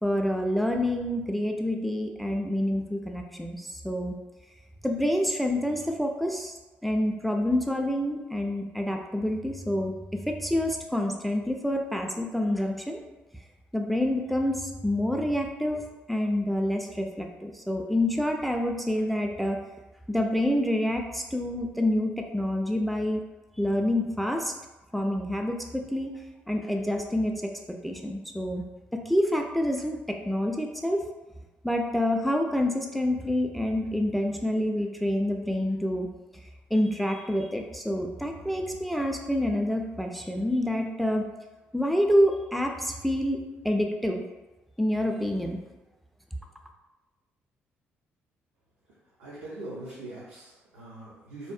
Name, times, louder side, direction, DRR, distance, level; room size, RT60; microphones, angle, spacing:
voice 1, 0.0-4.1 4.8-6.5 6.8-13.0 13.7-19.6 20.1-23.2 23.6-24.5 24.9-26.1 26.5-27.3 27.8-28.6 28.9-31.0 31.6-36.1 36.7-41.3 41.7-43.4 43.6-44.2 44.8-45.6, left 1 dB, ahead, 3 dB, 0.3 m, -27 dB
voice 2, 49.2-51.5, right 2 dB, 85° right, -9 dB, 0.5 m, -41 dB
2.7 x 2.0 x 2.4 m, 1.1 s
hypercardioid pair, 45°, 6 cm